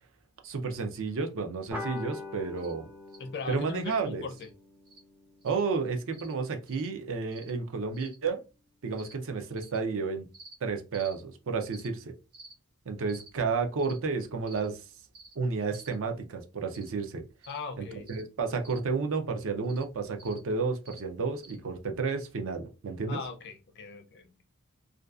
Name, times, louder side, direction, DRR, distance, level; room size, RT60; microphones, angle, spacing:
voice 1, 0.4-2.8 3.5-4.3 5.4-8.4 8.8-10.3 10.6-12.0 12.9-14.8 15.4-17.2 17.8-23.2, right 4 dB, 60° right, 0.5 m, -31 dB
sound 1, 1.7-6.6, left 2 dB, 10° right, 0.4 m, -44 dB
sound 2, 2.6-2.7 3.1-3.2 3.9-4.0 4.4-4.5 4.9-5.0 5.4-5.6 6.1-6.3 6.7-6.9 7.3-7.5 7.9-8.2 8.9-9.1 9.6-9.8 10.3-10.5 10.9-11.1 11.7-11.9 12.3-12.5 13.1-13.3 13.8-14.0 14.4-14.7 15.1-15.3 15.7-15.9 16.7-16.9 17.4-17.6 18.1-18.2 18.6-18.8 19.6-19.8 20.2-20.4 20.9-21.0 21.4-21.6, right 2 dB, 85° right, 0.8 m, -51 dB
voice 2, 3.2-4.5 17.5-18.1 23.1-24.3, left 5 dB, 50° left, 0.4 m, -39 dB
2.5 x 2.3 x 2.3 m
head